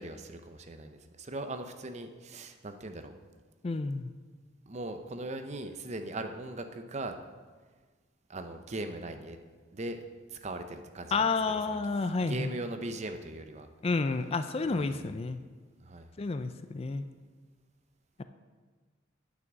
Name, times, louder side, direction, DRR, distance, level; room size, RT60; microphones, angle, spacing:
voice 1, 0.0-3.1 4.7-7.2 8.3-9.4 9.7-11.3 11.7-11.8 12.3-13.7 14.6-15.1 15.8-16.1, right 2 dB, 35° right, 7 dB, 0.7 m, -39 dB
voice 2, 3.6-4.1 11.1-12.5 13.8-15.4 16.2-17.0, left 4 dB, 30° left, 10 dB, 0.4 m, -30 dB
9.4 x 6.0 x 7.4 m, 1.4 s
head